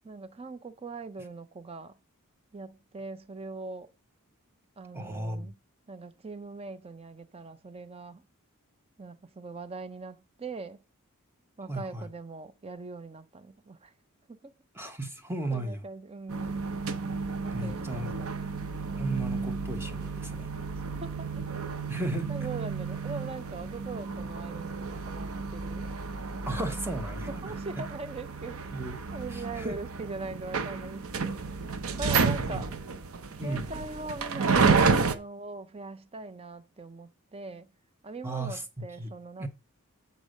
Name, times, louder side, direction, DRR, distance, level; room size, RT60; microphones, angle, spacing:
voice 1, 0.0-1.9 2.5-3.9 4.8-5.5 5.9-8.2 9.0-10.8 11.6-13.9 14.3-14.5 15.5-16.9 17.4-18.3 20.8-21.4 22.3-25.9 26.6-27.1 27.4-28.6 29.1-31.4 32.0-32.7 33.3-37.7 38.0-39.5, right 3 dB, 25° right, 0.5 m, -41 dB
voice 2, 4.9-5.5 11.7-12.1 14.7-15.8 17.5-18.3 19.0-20.5 21.9-22.3 26.4-27.4 27.8-27.9 28.7-29.0 29.3-29.8 32.1-32.6 33.4-33.7 38.2-39.1 39.4-39.5, right 2 dB, 10° right, 1.0 m, -35 dB
sound 1, 16.3-35.1, right 4 dB, 70° right, 0.7 m, -31 dB
8.1 x 4.0 x 6.4 m
head